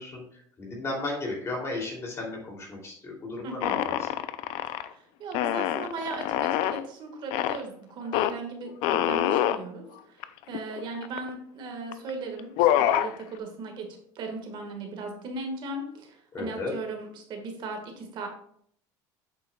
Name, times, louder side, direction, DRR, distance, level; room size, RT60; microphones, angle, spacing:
voice 1, 0.0-4.1 16.3-16.7, left 2 dB, 30° left, -1 dB, 2.8 m, -35 dB
voice 2, 3.4-3.8 4.8-13.9 14.1-18.3, right 3 dB, 55° right, 3 dB, 1.6 m, -37 dB
sound 1, 3.6-4.9 5.3-6.8 7.3-7.6 8.1-8.3 8.8-9.6 10.2-10.3 10.5-11.3 11.9-12.1 12.4-13.1, left 12 dB, 75° left, 0.4 m, -25 dB
8.1 x 7.0 x 2.3 m, 0.64 s
cardioid pair, 125°, 10 cm